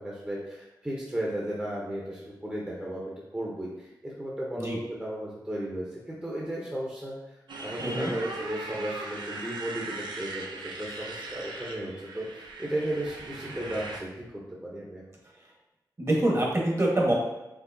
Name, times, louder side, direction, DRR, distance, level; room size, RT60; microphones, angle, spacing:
voice 1, 0.0-7.1 7.6-15.0, right 1 dB, 15° right, -5 dB, 0.8 m, -35 dB
Motorcycle, 7.5-14.0, right 2 dB, 85° right, 0.5 m, -39 dB
voice 2, 7.8-8.1 16.0-17.1, right 1 dB, 40° right, -2 dB, 1.2 m, -25 dB
4.7 x 3.0 x 2.6 m, 0.99 s
cardioid pair, 60°, 8 cm